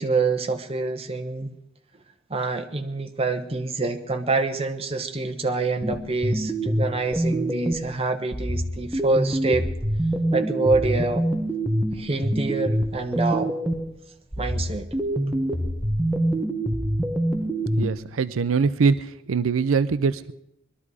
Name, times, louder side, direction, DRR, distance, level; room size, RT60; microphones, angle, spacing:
voice 1, 0.0-1.6 2.3-9.7 10.3-11.2 11.9-13.5 14.4-14.9, right 3 dB, 30° right, 5 dB, 1.0 m, -26 dB
sound 1, 5.8-7.9 8.3-13.9 14.3-17.9, right 1 dB, 5° right, 1.0 m, -25 dB
voice 2, 17.8-18.9 19.3-20.3, right 5 dB, 85° right, 14 dB, 0.5 m, -22 dB
21.0 x 12.5 x 4.8 m, 0.80 s
head